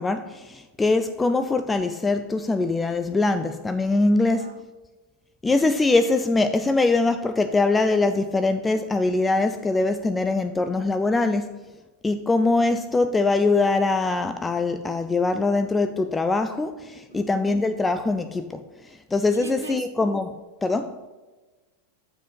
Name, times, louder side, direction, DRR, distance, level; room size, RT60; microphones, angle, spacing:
voice 1, 0.0-4.6 5.4-11.6 12.0-21.0, left 3 dB, 10° left, 0.4 m, -23 dB
voice 2, 4.3-4.6 17.1-17.3 19.3-19.8, right 7 dB, 70° right, 0.5 m, -39 dB
6.8 x 4.9 x 5.2 m
figure-of-eight pair, 90°, 0 cm